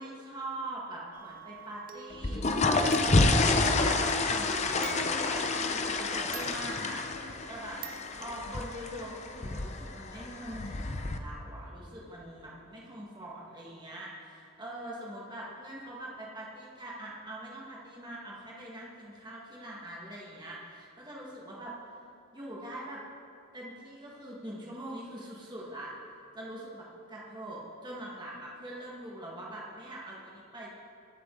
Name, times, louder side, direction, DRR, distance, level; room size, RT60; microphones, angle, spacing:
voice 1, 0.0-7.8 8.1-22.0 22.3-23.0 23.5-25.9 26.3-30.7, right 1 dB, 20° right, -5 dB, 1.7 m, -43 dB
sound 1, 1.1-5.5 6.3-7.4 7.8-8.8, right 7 dB, 40° right, 0.7 m, -45 dB
sound 2, 2.1-11.2, left 3 dB, 30° left, 0.6 m, -29 dB
22.5 x 7.5 x 3.9 m, 2.5 s
head